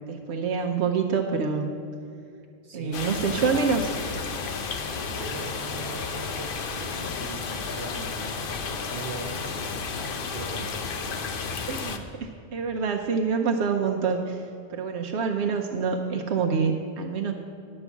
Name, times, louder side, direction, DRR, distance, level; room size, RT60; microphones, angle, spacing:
voice 1, 0.1-1.7 2.7-3.8 11.7-14.4 14.7-17.3, right 5 dB, 80° right, 3 dB, 0.9 m, -26 dB
voice 2, 2.6-4.1 5.0-9.8 10.3-11.1, right 2 dB, 65° right, 2 dB, 1.4 m, -40 dB
sound 1, 2.9-12.0, left 5 dB, 60° left, 0.8 m, -32 dB
11.0 x 5.3 x 7.1 m, 2.6 s
omnidirectional pair, 1.1 m